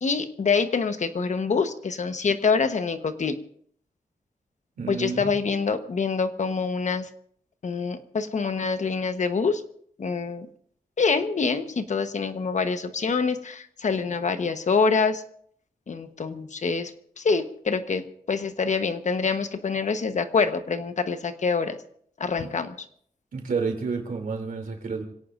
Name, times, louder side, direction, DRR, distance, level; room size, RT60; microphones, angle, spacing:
voice 1, 0.0-3.4 4.9-7.1 7.6-9.6 10.0-10.5 11.0-15.2 15.9-21.8 22.2-22.8, left 5 dB, 55° left, 8 dB, 1.1 m, -26 dB
voice 2, 4.8-5.4 23.3-25.0, right 4 dB, 75° right, 2 dB, 3.0 m, -30 dB
26.0 x 17.5 x 2.6 m, 0.64 s
wide cardioid pair, 115°, 15 cm